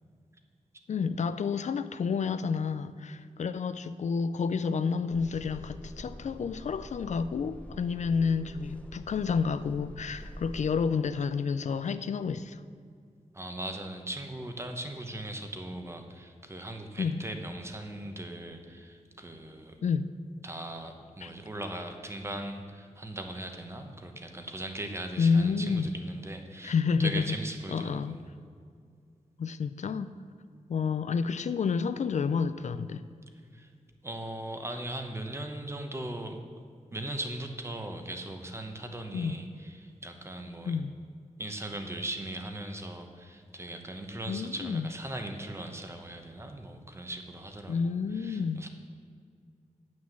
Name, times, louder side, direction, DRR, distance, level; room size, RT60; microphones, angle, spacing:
voice 1, 0.9-12.6 17.0-17.2 19.8-20.1 21.2-21.3 25.2-25.9 26.6-27.3 27.7-28.2 29.4-30.1 30.7-33.0 39.1-39.4 40.6-40.9 44.3-44.9 47.7-48.7, left 5 dB, 65° left, 13 dB, 0.4 m, -29 dB
sound 1, 5.1-10.7, equal, 10° left, 0.6 m, -46 dB
voice 2, 13.3-19.8 20.4-28.2 33.5-33.7 34.0-36.4 36.9-40.8 41.4-48.7, right 1 dB, 20° right, 5 dB, 1.0 m, -39 dB
9.4 x 6.3 x 7.2 m, 2.2 s
wide cardioid pair, 135°, 13 cm